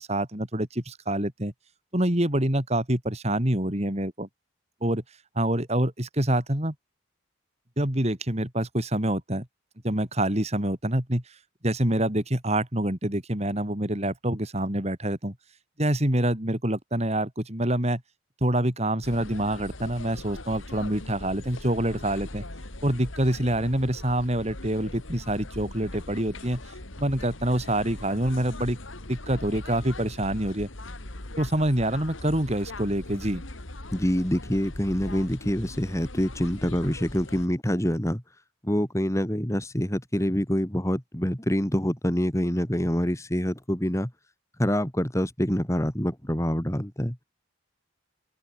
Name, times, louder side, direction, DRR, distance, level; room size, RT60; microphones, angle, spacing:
voice 1, 0.0-1.5 1.9-4.3 4.8-5.0 5.3-6.7 7.8-9.5 9.8-11.2 11.6-15.3 15.8-18.0 18.4-22.4 22.8-26.6 27.0-28.8 29.1-30.7 31.4-33.4, right 1 dB, 30° right, 3.3 m, -26 dB
sound 1, 19.0-37.5, left 1 dB, 80° left, 3.2 m, -40 dB
voice 2, 33.9-38.2 38.6-44.1 44.6-47.2, equal, 15° left, 2.3 m, -26 dB
open air
head